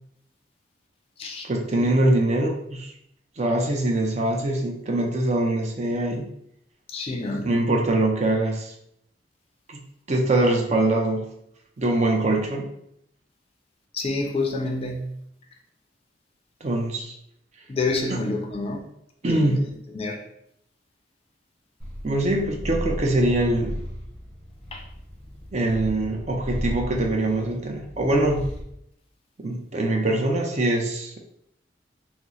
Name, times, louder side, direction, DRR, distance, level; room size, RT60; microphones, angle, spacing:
voice 1, 1.4-2.9 3.4-6.3 7.3-8.7 9.7-9.8 10.1-11.3 11.8-12.7 16.6-17.1 18.1-18.2 19.2-19.6 22.0-23.8 25.5-28.4 29.4-31.2, right 1 dB, 40° right, 1 dB, 0.5 m, -23 dB
voice 2, 6.9-7.5 13.9-15.0 17.7-18.8 19.2-19.6 19.9-20.2 24.7-24.8, left 3 dB, 30° left, 2 dB, 0.4 m, -27 dB
Purr, 21.8-28.7, equal, 5° left, 0.7 m, -35 dB
2.9 x 2.0 x 3.7 m, 0.75 s
head